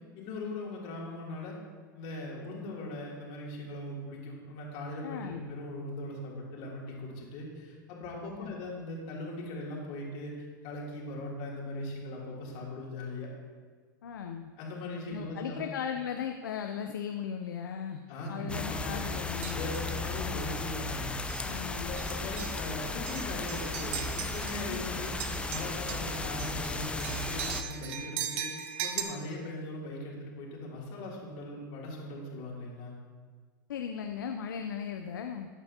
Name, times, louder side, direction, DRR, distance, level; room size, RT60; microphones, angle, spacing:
voice 1, 0.1-1.5 1.9-10.3 10.6-13.3 14.6-15.6 18.1-19.1 19.5-21.2 21.7-25.1 25.5-28.5 28.8-32.9, left 1 dB, 55° left, -3 dB, 3.0 m, -39 dB
voice 2, 5.0-5.4 8.4-8.6 14.0-14.5 15.1-19.6 21.4-22.0 24.7-24.8 33.7-35.5, left 7 dB, 80° left, 5 dB, 0.6 m, -37 dB
sound 1, 18.5-27.6, left 2 dB, 10° left, 0.6 m, -35 dB
sound 2, 19.4-19.9 20.4-20.6 21.3-21.6 22.0-24.8 25.1-29.0, right 9 dB, 55° right, 1.1 m, -39 dB
13.5 x 8.7 x 2.8 m, 1.5 s
hypercardioid pair, 100°, 11 cm